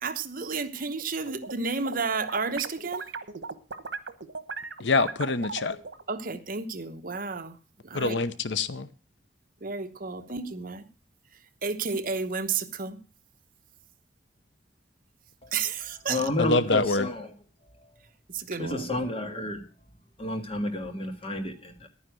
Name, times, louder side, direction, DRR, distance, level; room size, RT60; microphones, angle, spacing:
voice 1, 0.0-3.1 6.1-7.6 7.8-8.2 9.6-10.8 11.6-13.0 15.5-16.2 18.3-19.0, right 4 dB, 50° right, 1.0 m, -32 dB
sound 1, 1.0-1.6 1.9-6.0, right 4 dB, 80° right, 1.1 m, -37 dB
voice 2, 4.8-5.8 7.9-8.9 16.4-17.1, left 3 dB, 85° left, 0.8 m, -25 dB
voice 3, 16.1-17.3 18.6-19.6 20.2-21.9, left 1 dB, 30° left, 1.8 m, -31 dB
11.5 x 9.7 x 6.2 m
head